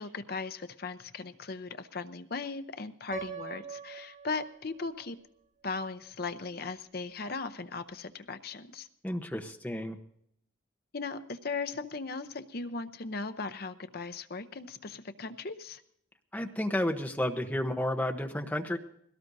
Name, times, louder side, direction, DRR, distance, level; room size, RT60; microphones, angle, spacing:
voice 1, 0.0-5.2 5.6-8.9 10.9-15.8, left 4 dB, 50° left, 11 dB, 0.7 m, -38 dB
Piano, 3.1-5.1, right 6 dB, 55° right, 3.2 m, -43 dB
voice 2, 9.0-10.0 16.3-18.8, left 1 dB, 10° left, 3 dB, 0.9 m, -31 dB
21.5 x 17.5 x 2.7 m, 0.71 s
head